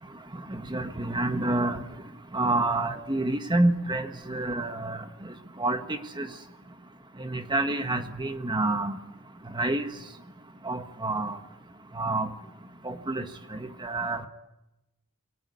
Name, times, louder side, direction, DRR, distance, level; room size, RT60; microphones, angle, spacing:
voice 1, 0.5-1.8 2.3-5.0 5.6-6.3 7.2-9.0 9.5-9.9 10.6-11.4 11.9-12.3 12.8-13.2 13.5-14.3, right 2 dB, 20° right, 7 dB, 1.5 m, -28 dB
29.0 x 22.0 x 8.3 m, 0.96 s
head